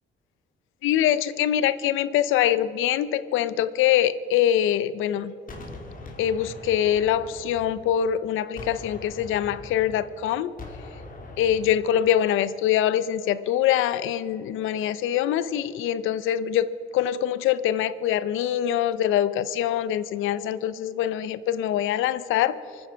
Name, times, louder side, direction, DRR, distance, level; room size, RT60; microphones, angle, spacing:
voice 1, 0.8-5.3 6.2-10.5 11.4-16.7 16.9-22.6, left 11 dB, 90° left, 16 dB, 0.7 m, -24 dB
Gunshot gunfire, 5.5-8.2 8.6-12.1, left 2 dB, 45° left, 3.0 m, -42 dB
24.5 x 9.8 x 5.7 m, 2.8 s
cardioid pair, 90°, 20 cm